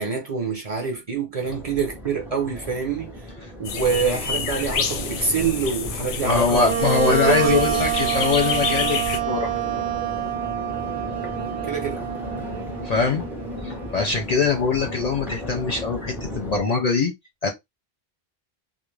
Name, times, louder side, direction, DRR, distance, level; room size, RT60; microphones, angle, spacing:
voice 1, 0.0-3.1 3.6-6.7 7.0-7.7 11.7-12.0, right 5 dB, 40° right, 0.6 m, -25 dB
Crowd, 1.4-16.6, equal, 5° right, 0.4 m, -35 dB
sound 1, 3.6-9.2, left 6 dB, 85° left, 0.8 m, -29 dB
voice 2, 6.2-9.5 12.8-13.2 13.6-17.1 17.4-17.5, left 4 dB, 50° left, 0.5 m, -22 dB
Wind instrument woodwind instrument, 6.6-14.1, right 11 dB, 80° right, 0.9 m, -27 dB
2.4 x 2.1 x 3.1 m
omnidirectional pair, 1.1 m